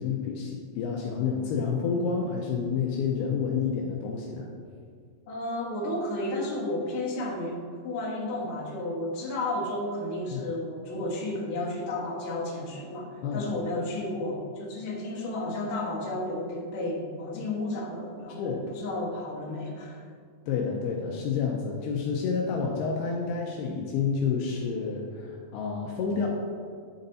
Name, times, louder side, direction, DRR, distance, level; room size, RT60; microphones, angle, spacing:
voice 1, 0.0-4.5 10.3-10.4 13.2-13.5 18.4-18.6 20.5-26.3, left 5 dB, 90° left, 0 dB, 2.2 m, -29 dB
voice 2, 5.3-20.0, left 1 dB, 65° left, -4 dB, 1.8 m, -32 dB
10.5 x 4.1 x 3.9 m, 2.1 s
omnidirectional pair, 5.2 m